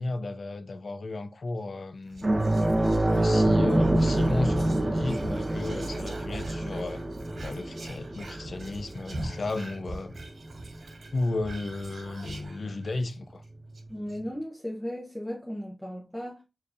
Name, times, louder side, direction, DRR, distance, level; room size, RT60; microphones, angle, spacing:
voice 1, 0.0-2.3 3.1-7.0 7.4-10.2 11.1-13.4, left 2 dB, 65° left, 0.4 m, -33 dB
Whispering, 2.1-13.1 13.4-13.5 13.7-14.2, right 1 dB, 75° right, 0.6 m, -43 dB
sound 1, 2.2-11.2 11.5-11.7 13.7-13.8, right 1 dB, 30° right, 0.7 m, -27 dB
voice 2, 13.9-16.4, equal, 5° left, 0.7 m, -36 dB
4.4 x 2.7 x 2.5 m
wide cardioid pair, 80°, 0 cm